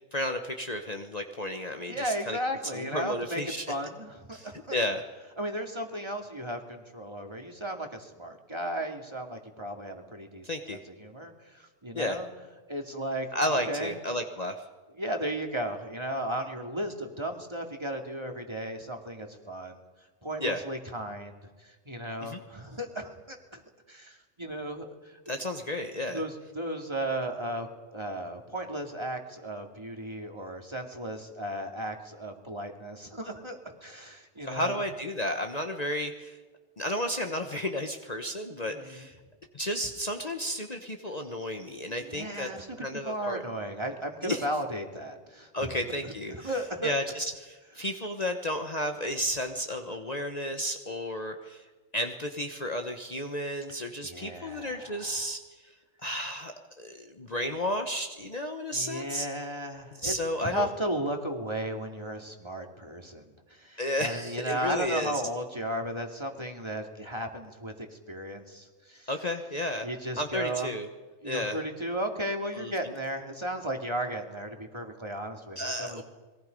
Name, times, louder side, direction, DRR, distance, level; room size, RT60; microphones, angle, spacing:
voice 1, 0.1-2.4 2.7-3.6 4.3-5.0 10.4-10.8 11.9-12.2 13.3-14.6 20.4-20.6 22.2-22.4 25.3-26.2 34.4-36.4 36.8-39.2 39.5-42.5 42.8-43.4 44.2-44.4 45.5-46.5 46.8-51.6 51.9-55.4 56.0-59.3 60.0-60.7 63.8-65.2 69.1-69.9 70.2-70.9 71.2-71.6 72.5-72.9 75.6-76.0, left 1 dB, 35° left, 5 dB, 1.2 m, -32 dB
voice 2, 1.9-3.4 3.7-4.8 5.4-12.3 12.7-13.9 15.0-19.8 20.2-23.6 23.9-25.1 26.1-27.7 27.9-34.8 38.7-39.1 42.0-45.7 46.0-47.0 54.0-55.3 58.7-63.2 63.5-69.1 69.8-70.7 71.2-76.0, right 1 dB, 25° right, 3 dB, 2.5 m, -35 dB
27.5 x 22.0 x 5.3 m, 1.3 s
omnidirectional pair, 1.2 m